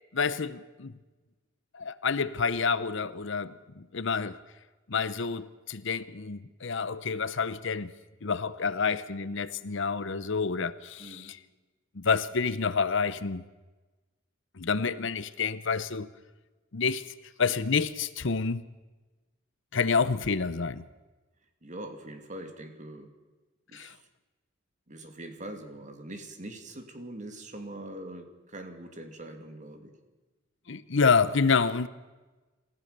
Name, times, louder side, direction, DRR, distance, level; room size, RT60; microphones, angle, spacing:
voice 1, 0.1-0.9 1.7-4.4 4.9-7.9 8.2-11.4 11.9-13.4 14.6-16.1 16.7-17.0 17.4-18.6 19.7-20.8 23.7-23.9 30.7-31.9, left 5 dB, 70° left, 15 dB, 0.8 m, -28 dB
voice 2, 11.0-11.3 21.6-23.1 23.7-24.1 24.9-29.9, right 1 dB, 40° right, 6 dB, 2.6 m, -43 dB
27.5 x 15.5 x 6.8 m, 1.2 s
head